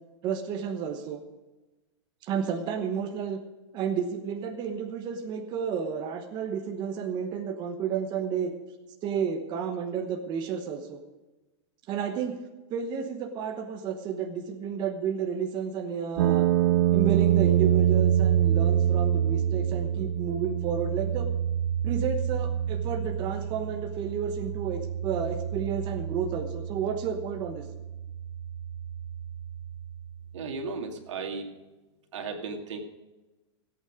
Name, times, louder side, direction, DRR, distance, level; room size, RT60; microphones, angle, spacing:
voice 1, 0.2-1.2 2.2-3.4 3.7-8.5 9.0-11.0 11.9-12.4 12.7-16.5 16.9-21.3 21.8-27.6, right 7 dB, 30° right, 5 dB, 1.1 m, -31 dB
sound 1, 16.2-30.2, right 10 dB, 60° right, 0.7 m, -27 dB
voice 2, 30.3-31.5 32.1-32.8, right 4 dB, 85° right, 4 dB, 2.2 m, -35 dB
17.5 x 8.6 x 5.0 m, 1.1 s
supercardioid pair, 150°, 15 cm